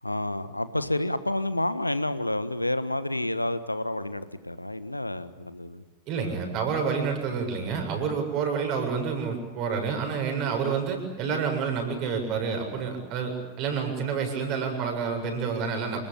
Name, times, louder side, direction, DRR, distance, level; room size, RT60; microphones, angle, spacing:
voice 1, 0.0-5.8, left 1 dB, 85° left, 13 dB, 1.4 m, -29 dB
voice 2, 6.1-16.0, right 6 dB, 40° right, 4 dB, 7.4 m, -29 dB
29.0 x 20.5 x 8.9 m, 1.1 s
figure-of-eight pair, 90°, 0 cm